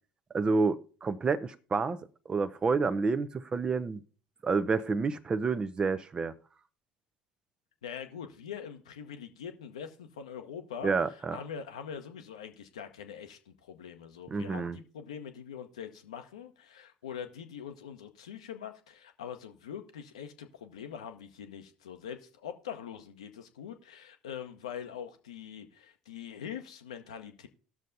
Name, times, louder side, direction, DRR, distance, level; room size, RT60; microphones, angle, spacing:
voice 1, 0.3-2.0 2.3-4.0 4.4-6.3 10.8-11.4 14.3-14.8, right 4 dB, 25° right, 0.6 m, -29 dB
voice 2, 7.8-27.5, left 8 dB, 75° left, 0.8 m, -43 dB
18.5 x 6.4 x 2.7 m
figure-of-eight pair, 65°, 3 cm